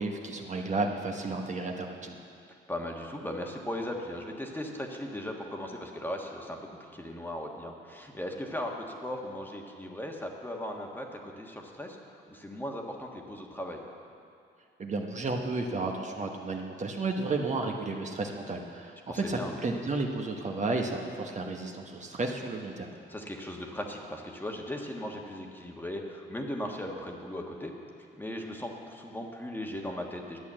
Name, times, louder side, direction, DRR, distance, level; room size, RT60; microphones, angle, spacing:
voice 1, 0.0-2.2 14.8-22.9, right 3 dB, 35° right, 2 dB, 1.1 m, -32 dB
voice 2, 2.7-13.8 19.1-19.5 23.1-27.7 28.2-30.4, left 1 dB, 10° left, 1 dB, 1.4 m, -38 dB
11.0 x 8.4 x 7.5 m, 2.4 s
cardioid pair, 90°, 20 cm